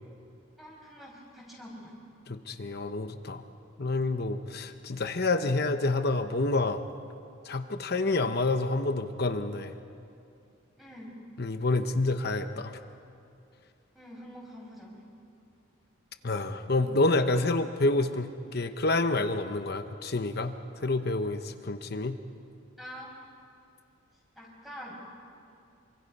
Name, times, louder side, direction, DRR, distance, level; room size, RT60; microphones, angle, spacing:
voice 1, 0.6-2.0 10.8-11.2 13.9-15.0 22.8-23.2 24.4-25.0, equal, ahead, -3 dB, 5.6 m, -45 dB
voice 2, 2.3-3.4 3.8-6.8 7.4-9.7 11.4-12.8 16.2-22.1, left 2 dB, 50° left, 8 dB, 0.9 m, -28 dB
27.5 x 24.5 x 5.5 m, 2.5 s
head